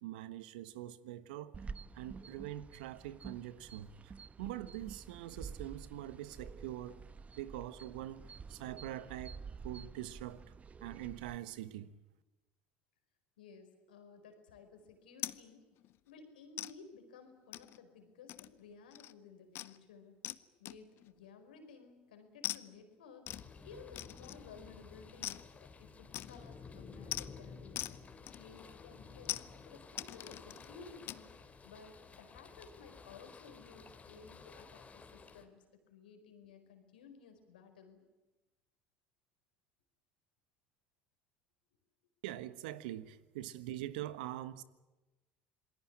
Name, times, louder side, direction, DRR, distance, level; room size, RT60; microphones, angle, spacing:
voice 1, 0.0-1.5 1.9-7.0 7.4-9.4 9.6-10.4 10.8-11.9 42.2-44.6, right 13 dB, 75° right, 1.3 m, -44 dB
sound 1, 1.5-11.4, right 5 dB, 30° right, 0.9 m, -49 dB
voice 2, 13.4-15.7 16.1-20.2 20.6-23.3 23.6-27.8 28.4-31.3 31.6-38.1, left 5 dB, 85° left, 4.8 m, -56 dB
sound 2, 15.2-15.4 15.8-16.0 16.6-16.7 17.5-17.8 18.3-18.6 18.9-19.1 19.6-19.8 20.2-20.4 20.7-21.1 22.4-22.6 23.3-23.5 24.0-24.5 25.2-25.5 26.1-26.5 27.1-27.3 27.8-28.0 28.3-28.7 29.3-29.5 30.0-30.7 31.1-31.2, left 15 dB, 55° left, 1.0 m, -42 dB
sound 3, 23.3-35.4, left 4 dB, 30° left, 3.3 m, -53 dB
27.5 x 20.5 x 8.8 m
hypercardioid pair, 70°, 5 cm